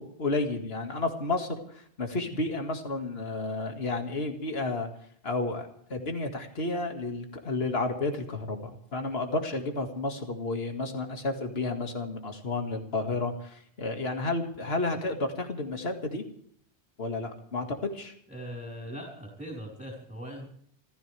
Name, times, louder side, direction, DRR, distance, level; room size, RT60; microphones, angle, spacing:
voice 1, 0.0-4.9 5.2-16.2 17.0-18.1, left 2 dB, 60° left, 4 dB, 2.3 m, -31 dB
voice 2, 18.3-20.5, equal, 5° right, -2 dB, 4.7 m, -40 dB
28.0 x 14.5 x 3.4 m, 0.63 s
omnidirectional pair, 1.2 m